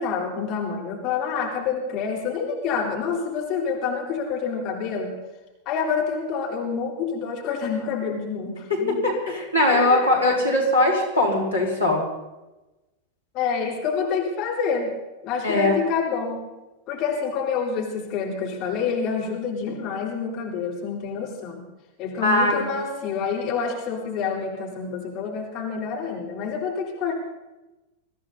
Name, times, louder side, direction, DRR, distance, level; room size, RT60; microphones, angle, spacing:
voice 1, 0.0-5.2 5.7-9.1 9.7-10.1 13.3-14.9 15.2-16.4 16.9-21.7 22.0-27.1, left 6 dB, 35° left, -1 dB, 3.8 m, -27 dB
voice 2, 8.7-12.0 15.4-15.7 22.2-22.7, left 1 dB, 85° left, -3 dB, 4.5 m, -21 dB
22.5 x 15.5 x 4.1 m, 1.0 s
figure-of-eight pair, 90°, 0 cm